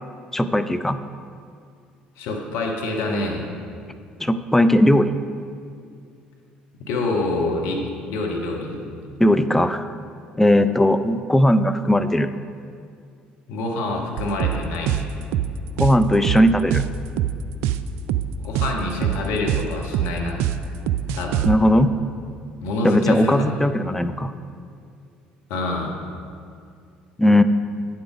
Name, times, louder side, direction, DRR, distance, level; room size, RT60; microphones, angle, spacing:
voice 1, 0.3-1.0 4.2-5.2 9.2-9.9 10.4-12.3 15.8-16.9 21.4-21.9 22.8-24.3 27.2-27.4, left 1 dB, 10° left, 10 dB, 0.5 m, -18 dB
voice 2, 2.2-3.4 6.8-7.8 8.1-8.8 13.5-15.1 18.4-20.4 21.1-21.5 22.6-23.5 25.5-26.0, left 2 dB, 65° left, 0 dB, 1.4 m, -26 dB
sound 1, 14.2-21.6, right 11 dB, 65° right, 0.3 m, -24 dB
9.3 x 7.7 x 5.0 m, 2.3 s
hypercardioid pair, 55°, 5 cm